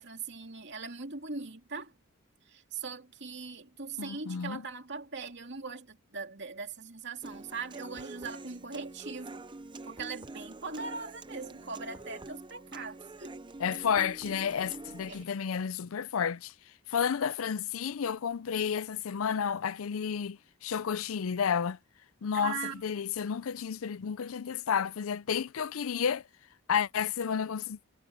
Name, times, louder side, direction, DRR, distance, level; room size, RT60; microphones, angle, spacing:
voice 1, 0.0-1.9 2.5-9.4 9.8-13.3 15.1-15.2 22.3-22.8, right 4 dB, 55° right, 2.6 m, -40 dB
voice 2, 4.0-4.6 13.6-16.5 16.9-21.8 22.2-26.2 26.7-27.8, left 7 dB, 75° left, 0.5 m, -31 dB
Human voice / Acoustic guitar, 7.2-15.2, right 2 dB, 20° right, 0.7 m, -45 dB
head